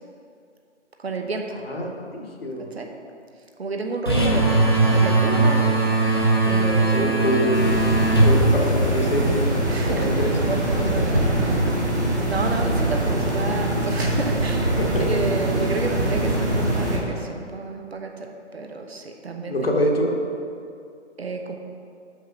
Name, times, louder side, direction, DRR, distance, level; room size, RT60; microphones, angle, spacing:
voice 1, 1.0-1.5 2.6-2.9 3.6-4.6 4.9-5.9 6.4-7.1 9.7-12.0 12.2-14.7 15.1-19.8 21.2-21.6, right 3 dB, 60° right, 3 dB, 0.9 m, -31 dB
voice 2, 1.6-2.7 6.9-7.7 8.2-9.6 9.9-10.5 10.8-10.9 14.8-14.9 19.5-20.2, equal, 55° left, 0 dB, 1.3 m, -25 dB
sound 1, 4.1-9.4, right 2 dB, 20° left, 0.5 m, -20 dB
sound 2, 7.5-17.0, right 1 dB, 15° right, 0.7 m, -23 dB
6.0 x 5.5 x 5.4 m, 2.4 s
figure-of-eight pair, 150°, 36 cm